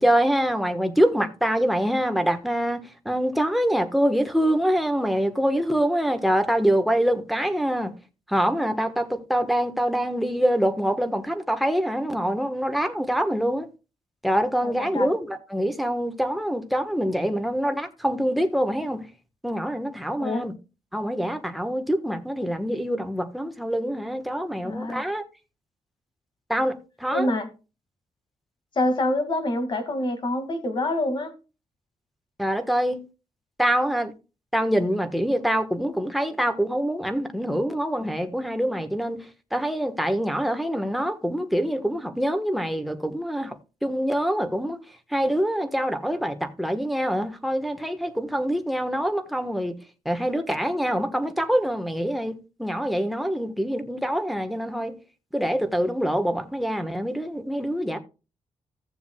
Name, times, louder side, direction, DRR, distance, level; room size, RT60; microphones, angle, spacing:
voice 1, 0.0-8.0 8.3-13.7 14.2-19.1 19.4-20.5 20.9-25.2 26.5-27.3 32.4-33.0 33.6-34.1 34.5-39.2 39.5-44.8 45.1-49.7 50.0-55.0 55.3-58.0, equal, ahead, 1.2 m, -25 dB
voice 2, 14.6-15.1 20.2-20.4 24.6-25.0 27.1-27.5 28.8-31.3, left 1 dB, 45° left, 2.0 m, -26 dB
16.5 x 7.0 x 2.3 m
wide cardioid pair, 140°, 11 cm